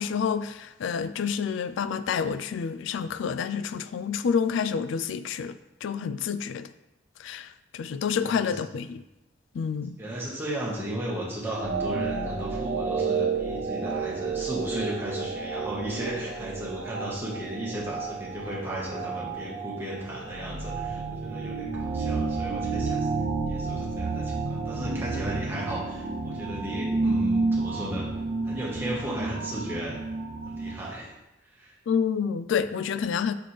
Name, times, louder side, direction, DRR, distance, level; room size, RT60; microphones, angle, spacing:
voice 1, 0.0-6.7 7.2-9.0 9.5-10.0 31.9-33.3, left 6 dB, 80° left, 12 dB, 0.3 m, -28 dB
voice 2, 8.2-8.6 10.0-23.1 23.4-28.1 28.4-30.0 30.4-31.1 31.5-31.7, equal, 10° right, -5 dB, 1.4 m, -35 dB
sound 1, 11.5-30.9, right 4 dB, 50° right, 0.5 m, -31 dB
5.7 x 5.2 x 3.3 m, 0.92 s
head